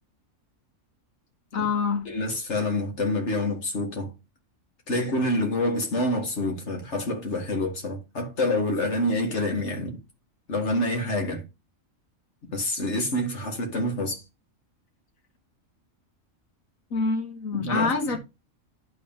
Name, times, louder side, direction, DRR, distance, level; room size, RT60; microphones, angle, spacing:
voice 1, 1.5-2.1 16.9-18.2, left 4 dB, 85° left, 1.7 m, -26 dB
voice 2, 2.1-4.1 4.9-10.0 10.5-11.4 12.5-14.2 17.5-18.2, left 1 dB, 60° left, 2.1 m, -27 dB
11.0 x 3.8 x 3.6 m
omnidirectional pair, 1.4 m